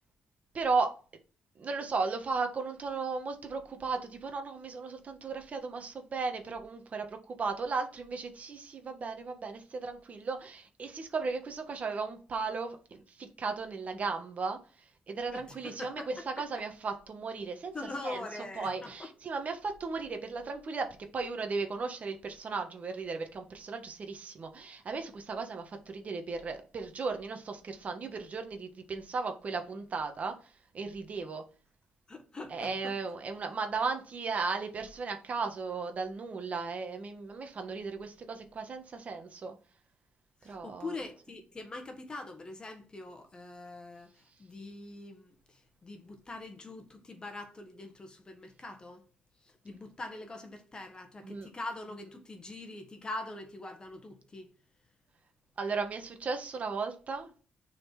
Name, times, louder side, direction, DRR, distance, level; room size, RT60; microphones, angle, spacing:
voice 1, 0.5-0.9 1.6-17.7 18.0-18.2 18.6-31.4 32.5-39.5 40.4-40.9 51.2-51.5 55.6-57.4, right 4 dB, 40° right, 1.3 m, -36 dB
voice 2, 15.3-16.4 17.7-19.1 32.1-33.0 40.4-49.0 49.4-54.5, left 2 dB, 25° left, 1.5 m, -43 dB
6.7 x 4.3 x 5.9 m
cardioid pair, 125°, 4 cm